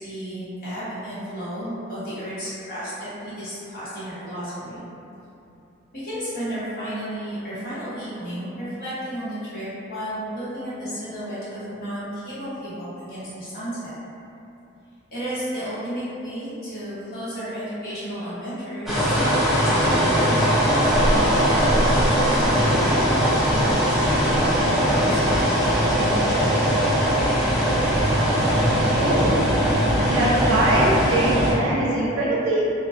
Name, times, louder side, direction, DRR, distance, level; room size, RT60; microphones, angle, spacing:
voice 1, 0.0-4.9 5.9-13.9 15.1-20.1 20.4-26.3, equal, 45° left, -13 dB, 1.0 m, -33 dB
sound 1, 18.9-31.5, equal, ahead, 0.3 m, -20 dB
voice 2, 28.9-29.5 30.1-32.6, right 1 dB, 90° right, -5 dB, 0.5 m, -23 dB
2.3 x 2.2 x 2.4 m, 2.7 s
head